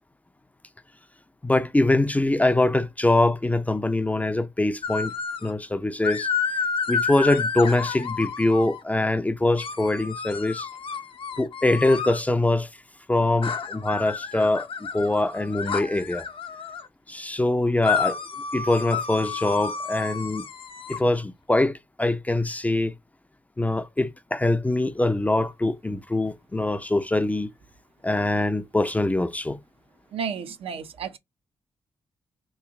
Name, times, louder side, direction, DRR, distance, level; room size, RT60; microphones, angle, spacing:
voice 1, 1.4-5.1 5.4-6.3 6.9-10.7 11.4-12.7 13.1-16.2 17.1-18.2 18.5-20.5 20.9-22.9 23.6-27.5 28.0-29.6, left 2 dB, 15° left, 0.4 m, -23 dB
sound 1, 4.8-5.5 6.0-8.8 9.6-12.2 13.4-16.9 17.8-21.0, left 5 dB, 60° left, 0.7 m, -30 dB
voice 2, 30.1-31.2, right 6 dB, 70° right, 0.6 m, -32 dB
3.1 x 2.4 x 3.6 m
supercardioid pair, 55°, 10 cm